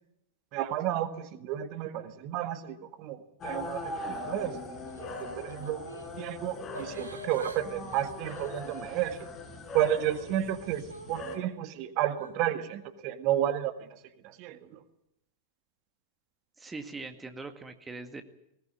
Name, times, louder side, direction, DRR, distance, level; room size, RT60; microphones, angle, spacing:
voice 1, 0.5-4.8 5.2-5.8 6.2-9.3 9.7-10.8 11.1-13.7 14.2-14.6, right 12 dB, 40° right, 11 dB, 1.8 m, -31 dB
sound 1, 3.4-11.4, left 2 dB, 25° left, 4.7 m, -40 dB
Yell / Crying sobbing, 4.9-6.1 6.7-7.6 7.9-9.3 9.8-11.4 12.1-12.3, right 3 dB, 75° right, 2.2 m, -45 dB
voice 2, 16.6-18.2, right 3 dB, 15° right, 8 dB, 1.9 m, -41 dB
20.5 x 19.0 x 8.7 m, 0.80 s
figure-of-eight pair, 90°, 0 cm